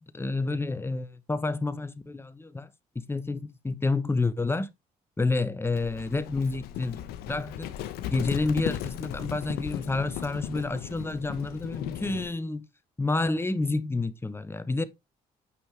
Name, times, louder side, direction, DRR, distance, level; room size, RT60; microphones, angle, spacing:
voice 1, 0.1-2.7 2.9-4.7 5.2-7.0 7.3-7.7 8.1-12.7 13.0-14.8, left 3 dB, 15° left, 0.9 m, -29 dB
Livestock farm animals working animals, 5.6-12.3, left 11 dB, 90° left, 0.9 m, -36 dB
8.7 x 5.6 x 3.3 m
cardioid pair, 80°, 16 cm